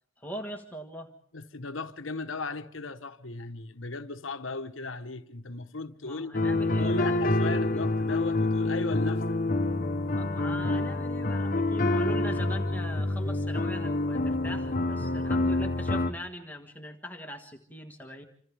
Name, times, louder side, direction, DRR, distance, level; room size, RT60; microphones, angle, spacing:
voice 1, 0.2-1.1 6.0-7.2 7.5-7.8 10.2-18.2, equal, 10° left, 1.6 m, -41 dB
voice 2, 1.3-6.3 6.8-9.4, left 3 dB, 90° left, 1.3 m, -36 dB
sound 1, 6.3-16.1, left 2 dB, 45° left, 1.2 m, -27 dB
27.5 x 27.0 x 3.5 m
head